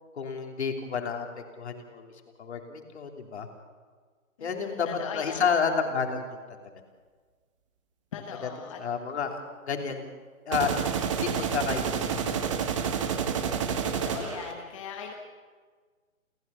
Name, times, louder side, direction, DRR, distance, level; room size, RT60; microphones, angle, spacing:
voice 1, 0.1-1.3 1.6-2.1 2.4-3.5 4.4-4.9 5.1-6.4 8.4-8.5 8.8-10.1 10.5-10.7 11.0-11.8 12.1-12.4 12.8-12.9, left 6 dB, 50° left, 3 dB, 3.3 m, -30 dB
voice 2, 4.4-5.6 8.1-8.8 13.9-15.1, left 6 dB, 25° left, 2 dB, 1.2 m, -39 dB
sound 1, 10.5-14.5, right 7 dB, 25° right, 1.3 m, -29 dB
29.0 x 14.5 x 7.1 m, 1.5 s
hypercardioid pair, 165°, 41 cm